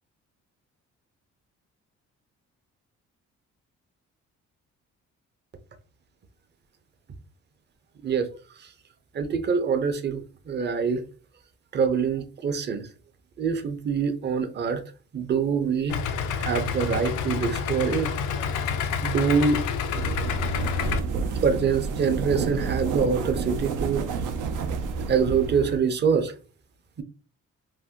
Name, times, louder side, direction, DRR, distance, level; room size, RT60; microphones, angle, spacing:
voice 1, 9.1-11.0 11.7-12.8 13.4-14.8 15.1-16.0 16.4-18.1 19.0-19.6 21.4-24.0 25.1-26.3, right 6 dB, 35° right, 0.5 m, -25 dB
Idling, 15.9-21.0, left 6 dB, 90° left, 0.5 m, -28 dB
sound 1, 19.9-25.8, right 4 dB, 80° right, 0.5 m, -30 dB
2.7 x 2.1 x 3.5 m
cardioid pair, 90°, 30 cm